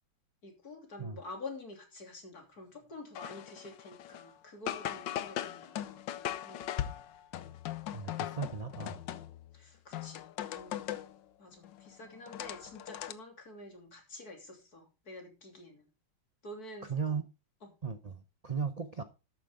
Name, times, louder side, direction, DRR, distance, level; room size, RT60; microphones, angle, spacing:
voice 1, 0.4-6.7 9.5-10.8 11.4-15.9 16.4-17.2 17.6-17.7, left 2 dB, 55° left, 3.6 m, -48 dB
sound 1, 3.2-4.3 4.7-9.5 9.9-11.2 11.6-13.1, left 11 dB, 90° left, 1.5 m, -39 dB
voice 2, 7.9-9.0 16.9-17.2 17.8-19.0, right 6 dB, 45° right, 0.5 m, -36 dB
12.5 x 9.1 x 3.7 m
omnidirectional pair, 2.0 m